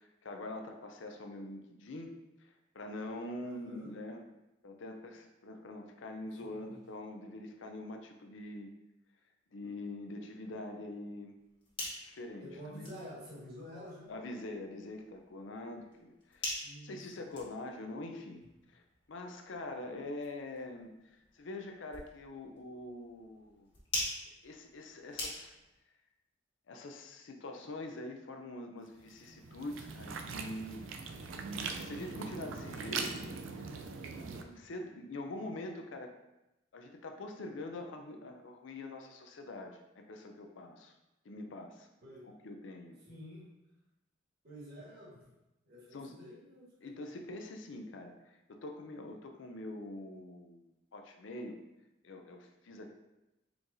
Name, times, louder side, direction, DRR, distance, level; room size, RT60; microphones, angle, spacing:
voice 1, 0.0-2.1 2.4-4.2 4.6-8.7 9.5-11.3 12.0-12.9 14.1-16.5 16.8-18.4 18.7-18.8 19.1-20.9 21.3-23.7 24.4-25.6 26.7-31.2 31.7-33.3 33.6-33.7 34.2-36.1 36.7-40.9 41.2-41.9 42.2-43.0 45.9-46.1 46.8-50.6 50.9-51.6 52.0-52.9, left 2 dB, 80° left, 4 dB, 0.5 m, -44 dB
voice 2, 3.4-4.0 6.4-6.8 12.4-14.1 16.6-17.3 42.0-42.2 43.1-43.5 44.4-45.2 45.6-47.0, equal, 55° right, -6 dB, 1.5 m, -49 dB
sound 1, 11.4-25.8, left 2 dB, 25° left, 1.4 m, -45 dB
sound 2, 29.0-34.4, right 4 dB, 90° right, 0.4 m, -41 dB
4.5 x 3.8 x 2.6 m, 0.94 s
head